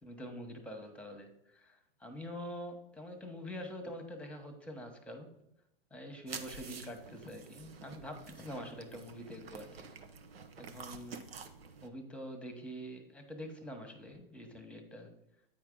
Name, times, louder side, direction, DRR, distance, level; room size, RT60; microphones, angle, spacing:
voice 1, 0.0-5.3 5.9-9.9 10.6-11.3 11.8-15.1, equal, 5° left, 5 dB, 1.1 m, -45 dB
sound 1, 6.3-11.9, right 5 dB, 85° right, 0.8 m, -49 dB
8.9 x 4.7 x 3.8 m, 0.82 s
hypercardioid pair, 115°, 29 cm